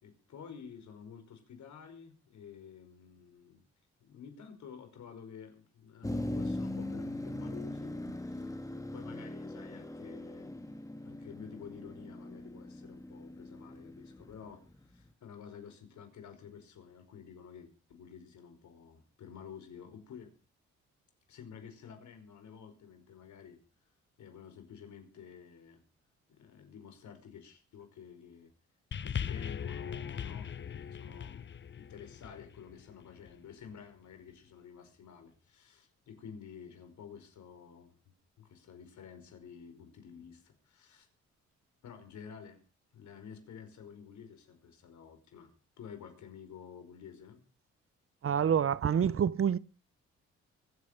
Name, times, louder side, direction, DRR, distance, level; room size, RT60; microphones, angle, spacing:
voice 1, 0.0-3.6 4.0-8.6 8.9-10.5 11.0-20.3 21.3-23.6 24.2-25.8 26.3-28.5 29.0-31.4 31.8-37.9 38.4-41.1 41.8-42.6 42.9-47.4, left 7 dB, 70° left, 5.1 m, -51 dB
Motor vehicle (road), 6.0-15.0, left 1 dB, 10° left, 2.4 m, -40 dB
sound 1, 28.9-33.5 34.3-34.4, left 8 dB, 40° left, 0.8 m, -40 dB
voice 2, 48.2-49.6, right 8 dB, 45° right, 0.9 m, -27 dB
24.0 x 8.6 x 5.8 m
supercardioid pair, 60°, 30 cm